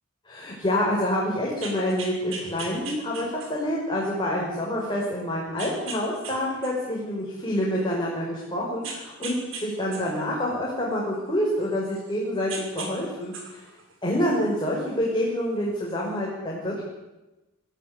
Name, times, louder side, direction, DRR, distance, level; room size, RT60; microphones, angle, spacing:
voice 1, 0.3-13.6 14.0-16.8, left 1 dB, 20° left, -4 dB, 5.8 m, -27 dB
sound 1, 1.5-3.7 4.3-4.4 5.6-6.4 6.6-7.9 8.8-9.6 9.9-12.1 12.5-12.9 13.2-14.6 15.7-15.8, right 4 dB, 70° right, 6.0 m, -38 dB
26.5 x 16.0 x 9.9 m, 1.0 s
head